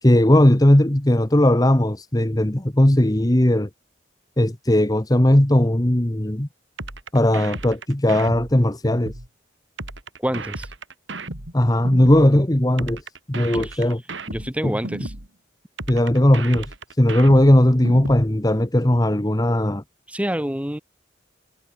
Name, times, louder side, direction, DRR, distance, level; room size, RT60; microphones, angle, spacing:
voice 1, 0.0-3.7 4.4-6.5 7.1-9.1 11.5-13.0 13.3-14.0 14.6-14.7 15.9-16.7 17.0-19.8, left 1 dB, 20° left, 1.2 m, -17 dB
sound 1, 6.8-9.3 9.8-12.3 12.8-15.3 15.8-18.3, right 2 dB, 70° right, 4.8 m, -34 dB
voice 2, 10.2-10.7 13.5-13.8 14.3-15.1 20.1-20.8, equal, 5° right, 3.0 m, -27 dB
head